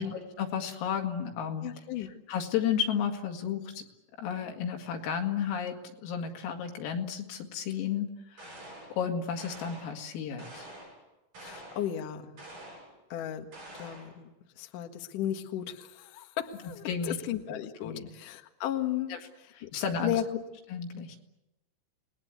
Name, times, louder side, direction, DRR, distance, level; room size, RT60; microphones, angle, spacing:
voice 1, 0.0-1.7 2.0-3.8 4.2-8.6 8.9-10.7 16.9-17.2 17.8-18.1 19.1-19.2 19.6-20.1 20.7-21.2, left 7 dB, 90° left, 4 dB, 4.8 m, -33 dB
voice 2, 1.6-2.1 11.4-12.4 13.1-13.5 13.7-19.1 19.6-19.7 20.0-20.2, left 11 dB, 60° left, 5 dB, 2.4 m, -35 dB
sound 1, 8.4-9.0 9.4-10.0 10.4-11.0 11.3-11.9 12.4-12.9 13.5-14.2, right 1 dB, 45° right, 9.4 m, -47 dB
29.5 x 20.5 x 8.2 m, 0.97 s
omnidirectional pair, 5.8 m